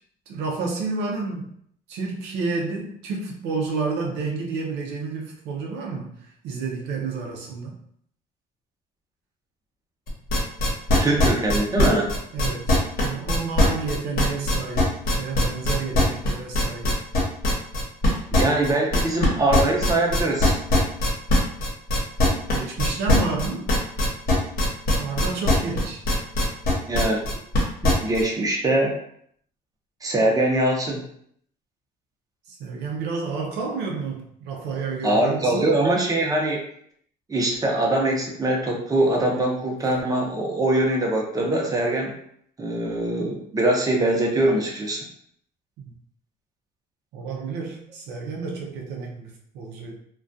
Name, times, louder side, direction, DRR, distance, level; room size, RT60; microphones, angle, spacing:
voice 1, 0.3-1.5 1.9-7.8 12.3-17.0 22.5-23.7 24.9-26.0 32.5-35.7 45.9-46.0 47.1-49.9, right 4 dB, 85° right, -1 dB, 0.5 m, -30 dB
sound 1, 10.1-28.2, left 2 dB, 60° left, 0.9 m, -20 dB
voice 2, 11.0-12.1 18.3-20.6 26.9-27.2 27.8-28.9 30.0-31.0 35.0-36.6 37.3-42.1 42.6-45.0, right 1 dB, 20° right, 0 dB, 0.6 m, -22 dB
2.3 x 2.2 x 2.5 m, 0.66 s
cardioid pair, 110°, 17 cm